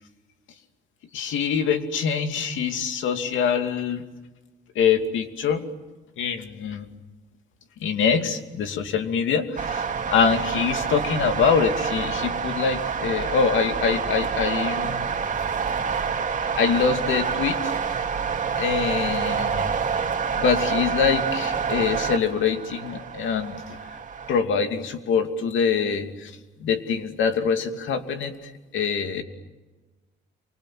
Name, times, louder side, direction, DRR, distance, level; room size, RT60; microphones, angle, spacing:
voice 1, 1.1-4.0 4.8-5.6 6.2-6.9 7.8-15.1 16.5-17.7 18.6-19.8 20.3-23.8 24.3-26.3 26.6-29.2, left 6 dB, 80° left, 7 dB, 2.7 m, -24 dB
sound 1, 9.6-24.4, right 6 dB, 40° right, 2.5 m, -27 dB
28.0 x 25.0 x 7.6 m, 1.2 s
cardioid pair, 90°, 20 cm